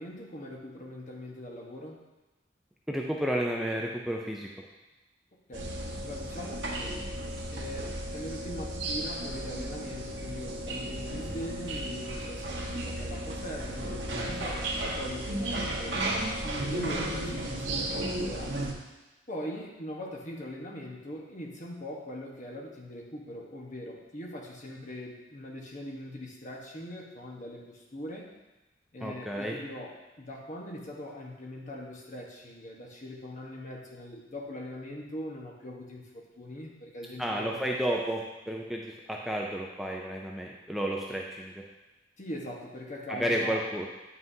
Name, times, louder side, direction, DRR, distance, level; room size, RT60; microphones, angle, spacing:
voice 1, 0.0-2.0 5.5-5.7 6.0-7.0 7.5-7.8 8.1-16.1 16.4-18.6 19.3-28.3 28.9-37.6 42.2-43.6, left 1 dB, 40° left, -2 dB, 1.1 m, -41 dB
voice 2, 2.9-4.6 29.0-29.6 37.2-41.6 43.1-43.9, equal, ahead, -1 dB, 0.4 m, -32 dB
sound 1, 5.5-18.7, right 1 dB, 80° right, 1.1 m, -34 dB
9.1 x 5.6 x 2.7 m, 1.1 s
head